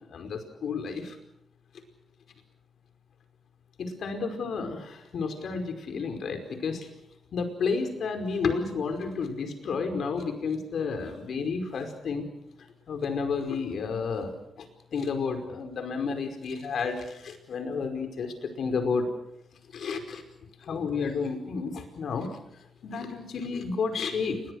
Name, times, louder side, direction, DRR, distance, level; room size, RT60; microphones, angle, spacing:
voice 1, 0.1-1.2 3.8-6.9 7.3-12.3 12.9-14.7 14.9-19.0 19.7-20.2 20.6-22.3 22.8-24.4, left 5 dB, 65° left, 6 dB, 5.2 m, -31 dB
29.0 x 22.0 x 6.6 m, 0.80 s
wide cardioid pair, 130°, 0 cm